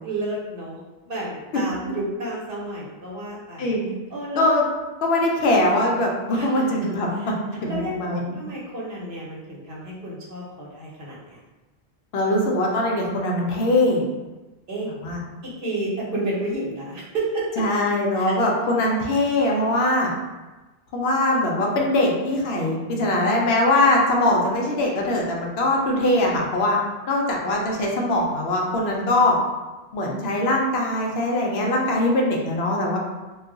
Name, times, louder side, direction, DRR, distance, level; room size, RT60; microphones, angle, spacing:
voice 1, 0.0-3.7 4.1-4.5 6.3-6.6 7.1-7.3 7.7-7.9 8.4-11.4 14.7-14.9 15.6-17.6 18.1-18.3, right 2 dB, 55° right, -5 dB, 1.0 m, -31 dB
voice 2, 5.0-7.3 7.6-8.2 12.1-14.0 15.0-15.2 17.6-20.1 20.9-26.8 27.1-29.4 29.9-33.0, left 1 dB, 70° left, -1 dB, 0.8 m, -21 dB
2.3 x 2.3 x 3.8 m, 1.1 s
omnidirectional pair, 1.1 m